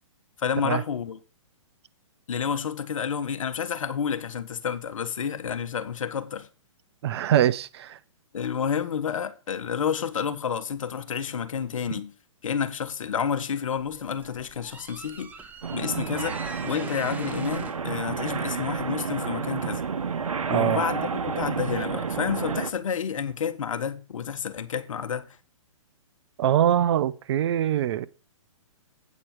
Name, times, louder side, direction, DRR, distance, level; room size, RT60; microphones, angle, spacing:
voice 1, 0.4-1.2 2.3-6.5 8.3-12.1 12.4-16.4 16.6-19.8 20.5-25.4, left 7 dB, 70° left, 1.2 m, -30 dB
voice 2, 7.0-8.0 20.5-20.8 26.4-28.1, right 11 dB, 50° right, 0.6 m, -23 dB
sound 1, 13.8-19.0, right 4 dB, 10° right, 0.7 m, -44 dB
sound 2, 15.6-22.7, right 6 dB, 90° right, 0.9 m, -30 dB
8.4 x 4.5 x 7.2 m
hypercardioid pair, 135°, 17 cm